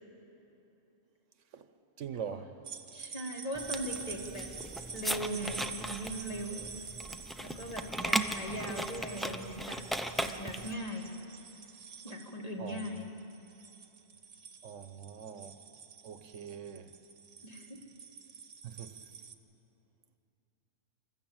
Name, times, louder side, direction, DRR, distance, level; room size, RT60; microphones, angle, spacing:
voice 1, 2.0-2.5 12.6-12.8 14.6-15.6 16.0-16.9 18.6-19.0, right 8 dB, 75° right, 10 dB, 1.2 m, -42 dB
sound 1, 2.6-19.3, right 5 dB, 55° right, 1.2 m, -47 dB
voice 2, 2.9-4.5 4.9-6.7 7.4-9.8 10.2-11.1 12.0-13.1 17.4-17.8, right 1 dB, 30° left, 0 dB, 2.2 m, -39 dB
sound 2, 3.5-10.7, right 1 dB, ahead, 0.4 m, -37 dB
25.5 x 13.5 x 8.8 m, 2.9 s
omnidirectional pair, 1.3 m